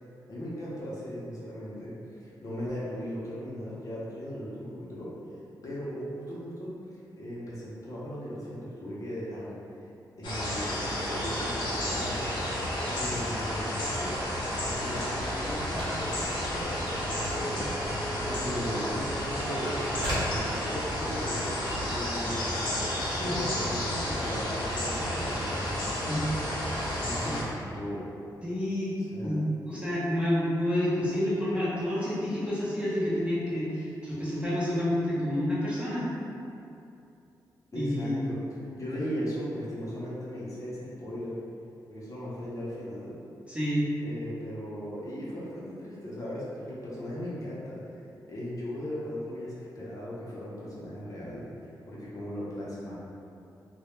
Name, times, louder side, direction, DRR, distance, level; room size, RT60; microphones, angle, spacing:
voice 1, 0.3-5.1 5.6-6.7 7.2-9.6 10.2-12.4 13.0-14.4 14.7-19.8 20.2-21.5 21.8-22.7 23.2-25.7 27.0-28.1 29.0-29.4 37.7-41.4 41.9-43.1 44.0-48.0 48.3-51.5 51.9-52.9, equal, 50° left, -7 dB, 0.6 m, -37 dB
sound 1, 10.2-27.4, left 1 dB, 85° left, 0.6 m, -31 dB
Telephone, 13.8-21.1, equal, 80° right, 0.8 m, -40 dB
voice 2, 28.4-29.0 29.2-36.1 37.7-38.3 43.5-43.9, left 1 dB, 15° right, -9 dB, 0.7 m, -29 dB
2.2 x 2.0 x 3.0 m, 2.6 s
cardioid pair, 100°, 8 cm